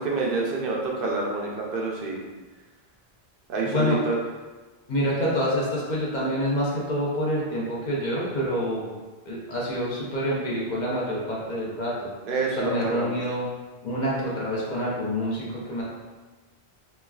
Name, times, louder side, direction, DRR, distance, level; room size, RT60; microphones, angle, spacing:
voice 1, 0.0-2.2 3.5-4.2 12.3-13.1, right 3 dB, 65° right, -2 dB, 0.7 m, -27 dB
voice 2, 3.6-4.0 4.9-8.9 9.3-12.1 12.5-13.5 13.8-15.8, equal, 50° left, -6 dB, 0.7 m, -27 dB
3.1 x 2.3 x 2.3 m, 1.3 s
omnidirectional pair, 1.1 m